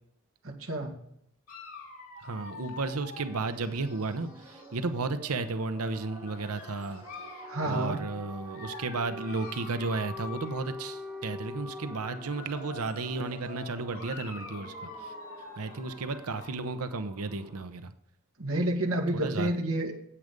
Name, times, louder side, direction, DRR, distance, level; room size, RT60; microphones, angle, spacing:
voice 1, 0.4-0.9 7.5-8.0 18.4-19.9, right 1 dB, 65° right, 0 dB, 2.2 m, -29 dB
Dog, 1.5-4.9 5.7-7.6 8.4-11.0 11.7-16.6, left 3 dB, 75° left, 3.0 m, -46 dB
voice 2, 2.2-7.0 7.6-15.1 15.4-17.9 19.1-19.5, right 3 dB, 80° right, 10 dB, 0.8 m, -33 dB
sound 1, 2.9-17.6, left 1 dB, 20° right, 2.3 m, -46 dB
9.9 x 8.6 x 5.3 m, 0.72 s
head